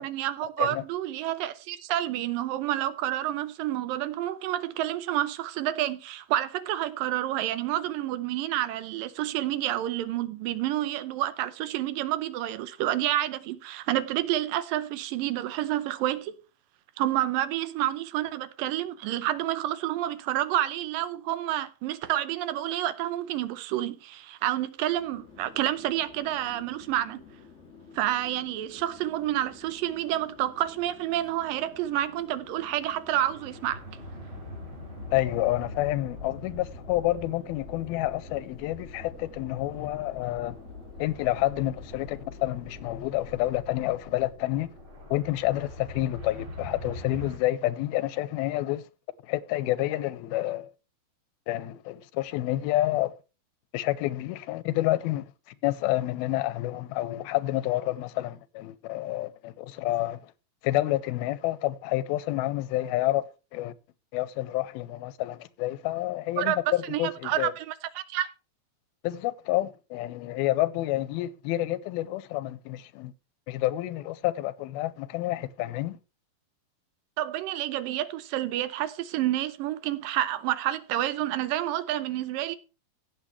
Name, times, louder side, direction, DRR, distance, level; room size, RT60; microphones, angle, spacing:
voice 1, 0.0-16.4 17.0-27.2 27.9-33.8 66.4-66.6 66.9-68.3 77.2-82.6, right 13 dB, 75° right, 2.4 m, -29 dB
Chatter / Fixed-wing aircraft airplane, 24.8-43.7, left 5 dB, 75° left, 0.6 m, -52 dB
sound 1, 33.1-47.4, left 1 dB, 35° right, 3.4 m, -43 dB
voice 2, 35.1-40.6 41.0-44.7 45.1-48.8 49.3-50.7 51.5-53.1 53.7-55.3 55.6-60.3 60.6-63.2 63.5-63.7 64.1-67.5 69.0-73.1 73.5-76.0, left 16 dB, 90° left, 2.6 m, -29 dB
16.0 x 8.1 x 3.2 m
omnidirectional pair, 4.3 m